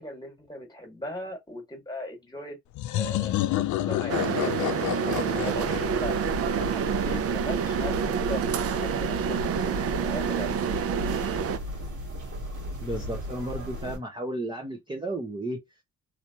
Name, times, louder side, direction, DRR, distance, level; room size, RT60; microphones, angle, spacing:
voice 1, 0.0-2.6 2.9-3.3 3.7-6.1 6.7-8.4 8.7-11.0, left 1 dB, 15° left, 1.7 m, -39 dB
sound 1, 2.7-7.3, left 14 dB, 75° left, 0.5 m, -30 dB
sound 2, 4.1-11.6, right 8 dB, 50° right, 0.5 m, -28 dB
sound 3, 5.1-14.0, left 1 dB, 75° right, 1.9 m, -36 dB
voice 2, 12.8-15.6, right 1 dB, 15° right, 0.8 m, -33 dB
3.3 x 2.8 x 2.8 m
cardioid pair, 90°, 30 cm